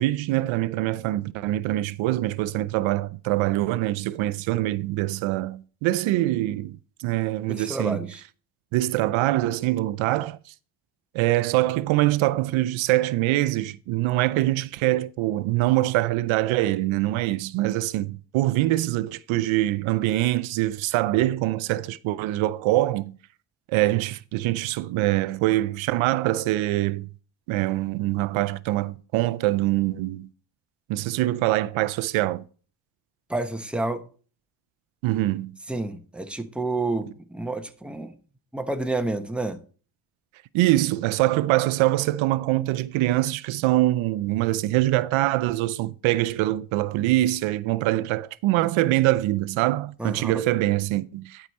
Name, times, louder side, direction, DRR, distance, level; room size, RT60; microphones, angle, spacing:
voice 1, 0.0-8.1 8.7-10.4 11.1-23.1 23.7-27.1 27.5-30.3 30.9-32.4 35.0-35.5 40.5-51.5, right 16 dB, 85° right, 0.5 m, -24 dB
voice 2, 7.5-8.2 33.3-34.0 35.7-38.2 38.5-39.6 50.0-50.5, right 2 dB, ahead, 0.9 m, -29 dB
11.0 x 4.9 x 4.1 m
cardioid pair, 95°, 47 cm